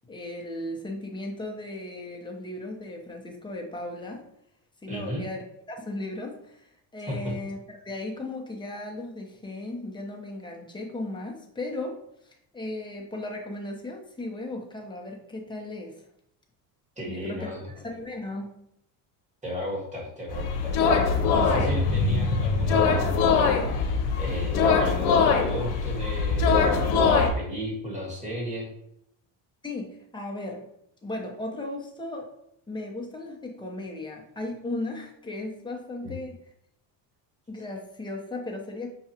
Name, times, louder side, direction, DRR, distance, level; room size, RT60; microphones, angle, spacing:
voice 1, 0.1-4.2 4.8-5.4 5.7-6.7 6.9-7.6 7.8-12.0 12.2-15.9 17.1-17.5 17.8-18.5 29.6-30.7 31.0-32.3 32.7-36.4 37.5-38.9, left 2 dB, 10° left, -1 dB, 0.8 m, -36 dB
voice 2, 4.9-5.3 7.1-7.3 17.0-17.7 19.4-20.8 21.3-23.6 24.2-26.7 26.9-28.7 36.0-36.2, equal, 15° right, -3 dB, 1.5 m, -35 dB
sound 1, 20.3-27.3, left 5 dB, 80° left, 0.9 m, -22 dB
5.9 x 2.4 x 2.8 m, 0.75 s
cardioid pair, 115°, 46 cm